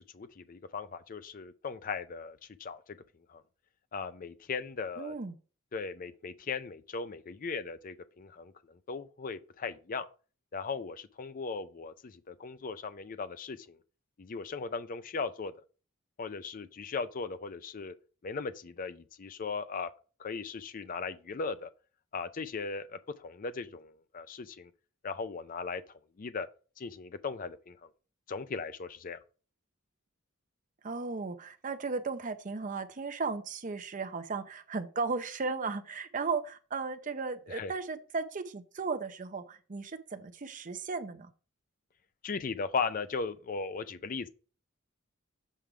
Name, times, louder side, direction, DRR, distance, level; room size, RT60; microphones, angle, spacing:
voice 1, 0.0-2.8 3.3-3.4 3.9-5.1 5.7-10.1 10.5-13.8 14.2-15.5 16.2-17.9 18.2-19.9 20.2-21.7 22.1-24.7 25.0-25.8 26.2-26.5 26.8-27.9 28.3-29.2 37.5-37.7 42.2-44.3, left 4 dB, 40° left, 0.4 m, -38 dB
voice 2, 5.0-5.4 30.8-41.3, right 4 dB, 40° right, 0.6 m, -35 dB
7.5 x 3.4 x 4.8 m
head